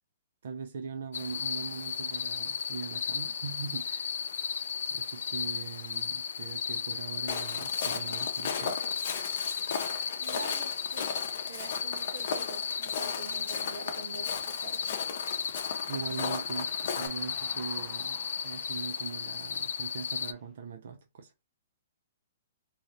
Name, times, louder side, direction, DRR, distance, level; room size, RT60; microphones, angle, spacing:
voice 1, 0.4-4.1 4.9-8.8 15.9-21.5, right 5 dB, 55° right, 0.4 m, -41 dB
sound 1, 1.1-20.3, left 7 dB, 75° left, 0.3 m, -35 dB
Walk footsteps, 7.3-17.1, left 6 dB, 45° left, 0.7 m, -37 dB
voice 2, 10.2-11.1 11.4-14.9, right 3 dB, 80° right, 1.2 m, -45 dB
sound 2, 15.3-20.5, left 2 dB, 10° left, 0.6 m, -53 dB
2.8 x 2.8 x 2.5 m
hypercardioid pair, 175°, 0 cm